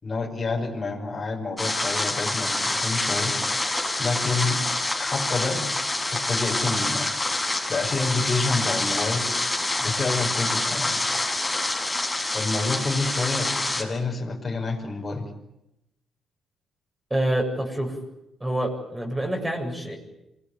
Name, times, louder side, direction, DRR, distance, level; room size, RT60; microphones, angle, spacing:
voice 1, 0.0-3.6 4.0-4.6 5.0-5.7 6.1-7.1 7.7-9.3 9.8-11.0 12.3-15.3, left 3 dB, 30° left, 1 dB, 5.5 m, -28 dB
sound 1, 1.6-13.8, left 2 dB, 10° left, 7.5 m, -26 dB
voice 2, 17.1-18.0 18.4-20.0, right 1 dB, 15° right, 2 dB, 7.8 m, -27 dB
27.5 x 20.5 x 9.7 m, 0.88 s
cardioid pair, 90°, 0 cm